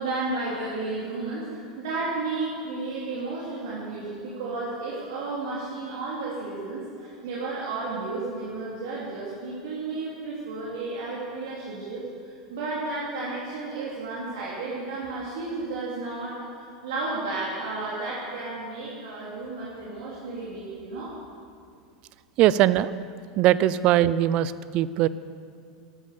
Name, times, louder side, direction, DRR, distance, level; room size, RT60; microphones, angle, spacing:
voice 1, 0.0-21.1, right 3 dB, 65° right, -6 dB, 3.3 m, -33 dB
voice 2, 22.4-22.9 23.4-25.1, right 13 dB, 45° right, 17 dB, 0.6 m, -20 dB
14.5 x 13.0 x 6.9 m, 2.3 s
figure-of-eight pair, 85°, 2 cm